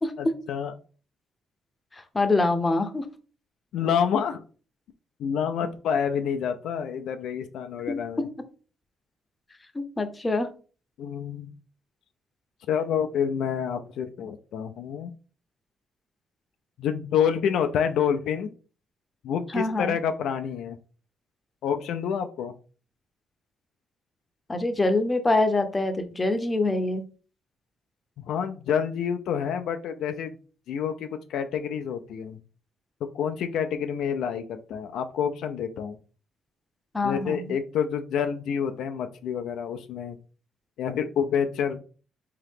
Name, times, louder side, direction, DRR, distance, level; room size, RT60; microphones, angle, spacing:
voice 1, 0.2-0.7 3.7-4.4 5.2-8.3 11.0-11.5 12.7-15.1 16.8-18.5 19.2-20.8 21.6-22.5 28.2-30.4 30.7-32.4 33.1-36.0 37.0-40.2 40.8-41.8, left 7 dB, 80° left, 7 dB, 0.3 m, -28 dB
voice 2, 1.9-3.1 7.9-8.0 9.7-10.5 19.5-20.0 24.5-27.0 36.9-37.6, left 2 dB, 20° left, 7 dB, 0.6 m, -25 dB
3.7 x 2.8 x 3.5 m, 0.38 s
cardioid pair, 90°, 0 cm